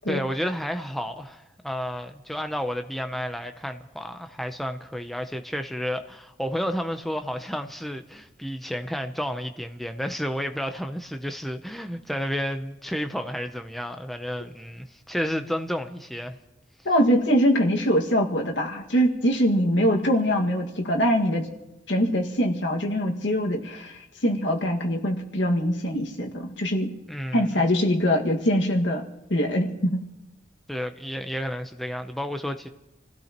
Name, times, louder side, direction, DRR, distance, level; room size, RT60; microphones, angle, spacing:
voice 1, 0.1-16.4 27.1-27.7 30.7-32.7, equal, ahead, 0.6 m, -31 dB
voice 2, 16.9-21.5 21.9-23.9 24.2-26.9 27.3-29.0 29.3-30.0, equal, 70° left, 1.9 m, -23 dB
28.0 x 16.5 x 3.0 m
head